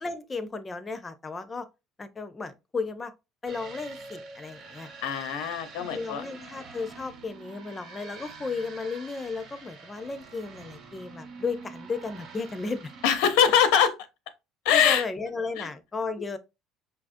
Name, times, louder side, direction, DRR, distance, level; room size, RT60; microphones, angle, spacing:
voice 1, 0.0-1.7 2.0-3.1 3.4-4.9 5.8-12.9 14.7-16.4, left 4 dB, 15° left, 0.4 m, -34 dB
sound 1, 3.5-13.6, right 4 dB, 45° right, 0.8 m, -46 dB
voice 2, 5.0-6.2 13.0-13.9 14.6-15.0 15.6-15.7, left 8 dB, 85° left, 0.7 m, -22 dB
5.6 x 2.4 x 2.4 m
cardioid pair, 155°, 0 cm